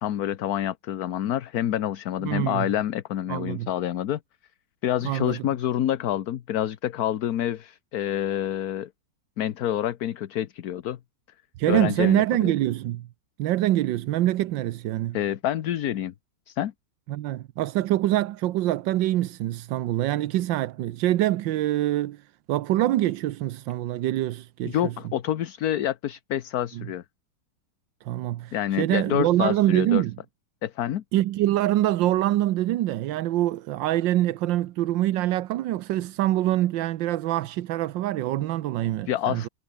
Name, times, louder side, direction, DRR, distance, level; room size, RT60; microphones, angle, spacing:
voice 1, 0.0-4.2 4.8-8.9 9.4-11.0 11.7-12.5 15.1-16.1 16.5-16.7 24.6-27.0 28.5-30.0 30.6-31.0 39.1-39.5, left 11 dB, 60° left, 1.3 m, -27 dB
voice 2, 2.2-2.7 3.3-3.7 5.0-5.5 11.6-13.1 13.4-15.2 17.1-24.9 26.7-26.9 28.0-30.2 31.1-39.5, right 14 dB, 85° right, 1.4 m, -25 dB
omnidirectional pair, 2.0 m